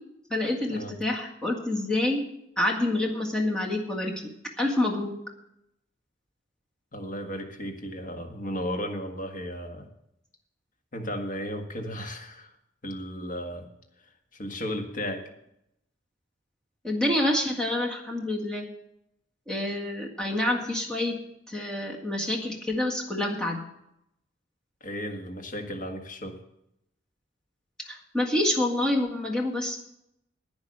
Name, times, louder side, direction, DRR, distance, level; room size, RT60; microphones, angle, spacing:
voice 1, 0.3-2.2 2.6-4.3 4.6-5.1 16.8-18.7 19.5-21.2 21.5-23.6 27.9-29.8, left 1 dB, 5° left, -1 dB, 1.9 m, -27 dB
voice 2, 6.9-9.9 10.9-12.5 12.8-13.7 14.3-15.2 24.8-26.4, equal, 45° left, 4 dB, 1.7 m, -34 dB
10.5 x 9.5 x 6.6 m, 0.80 s
head